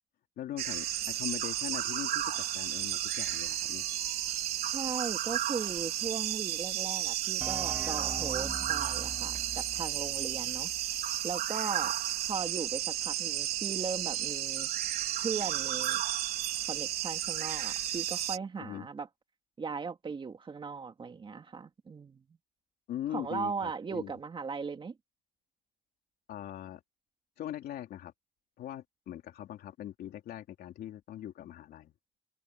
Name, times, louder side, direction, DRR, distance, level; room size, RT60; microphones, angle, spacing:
voice 1, 0.4-3.9 18.6-18.9 22.9-24.1 26.3-26.8 27.4-28.1 28.6-31.9, left 12 dB, 65° left, 3.2 m, -41 dB
sound 1, 0.6-18.4, right 12 dB, 65° right, 4.1 m, -33 dB
voice 2, 4.7-10.7 11.2-11.9 12.3-14.7 15.2-16.0 16.7-19.1 19.6-22.2 23.1-24.9, right 5 dB, 30° right, 2.6 m, -38 dB
sound 2, 7.4-11.0, right 2 dB, 10° right, 2.9 m, -43 dB
cardioid pair, 110°, 17 cm